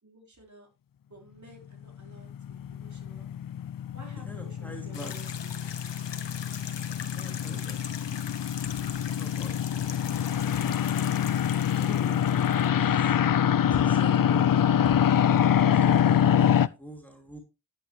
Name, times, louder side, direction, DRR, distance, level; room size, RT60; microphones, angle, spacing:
voice 1, 0.0-0.7 1.1-3.3 3.9-6.0, right 2 dB, 40° right, 1 dB, 4.9 m, -52 dB
sound 1, 2.0-16.7, left 9 dB, 50° left, 0.6 m, -25 dB
voice 2, 4.3-5.1 7.1-8.2 11.8-13.2 13.7-15.0 15.7-17.4, equal, 5° left, 2 dB, 2.8 m, -44 dB
sound 2, 4.9-12.7, left 7 dB, 75° left, 1.4 m, -41 dB
10.5 x 10.0 x 3.2 m, 0.29 s
cardioid pair, 60°, 44 cm